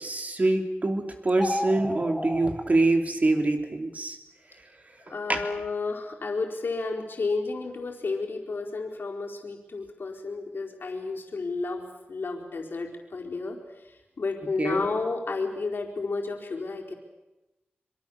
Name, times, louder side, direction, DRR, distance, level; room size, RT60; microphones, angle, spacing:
voice 1, 0.0-4.2 5.3-5.4 14.6-14.8, right 2 dB, 40° right, 5 dB, 3.8 m, -25 dB
sound 1, 1.3-2.5, left 1 dB, 10° left, 1.5 m, -31 dB
voice 2, 5.1-16.9, left 3 dB, 65° left, 0 dB, 4.6 m, -32 dB
25.5 x 23.5 x 7.3 m, 1.0 s
wide cardioid pair, 75°, 4 cm